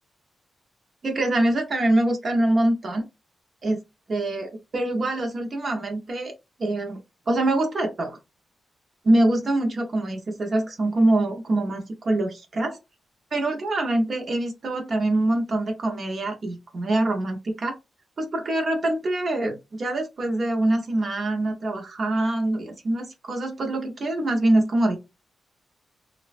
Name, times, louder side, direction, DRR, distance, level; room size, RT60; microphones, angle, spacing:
voice 1, 1.0-3.0 3.6-3.8 4.1-6.3 6.6-7.0 7.3-8.2 9.0-12.8 13.3-17.8 18.2-25.0, right 1 dB, 40° right, 0.5 m, -24 dB
3.2 x 2.1 x 2.4 m
wide cardioid pair, 165°, 0 cm